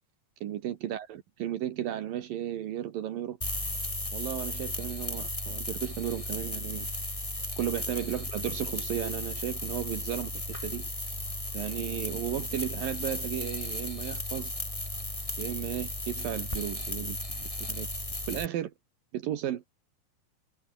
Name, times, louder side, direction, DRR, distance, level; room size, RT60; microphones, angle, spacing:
voice 1, 0.4-3.4 4.1-6.9 7.6-11.2 11.5-14.5 15.4-17.9 18.3-18.7 19.1-19.7, right 11 dB, 75° right, 3.1 m, -34 dB
sound 1, 3.4-18.5, left 1 dB, 10° left, 4.6 m, -35 dB
omnidirectional pair, 4.2 m